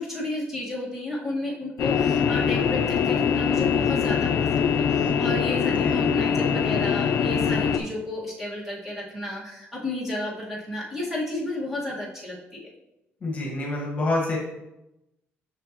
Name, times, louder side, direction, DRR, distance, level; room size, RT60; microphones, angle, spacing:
voice 1, 0.0-12.7, left 1 dB, 5° right, -5 dB, 1.8 m, -32 dB
sound 1, 1.8-7.8, left 7 dB, 65° left, 0.5 m, -23 dB
voice 2, 5.7-6.0 13.2-14.4, left 2 dB, 35° left, -2 dB, 1.6 m, -27 dB
6.7 x 6.2 x 3.0 m, 0.92 s
cardioid pair, 145°, 4 cm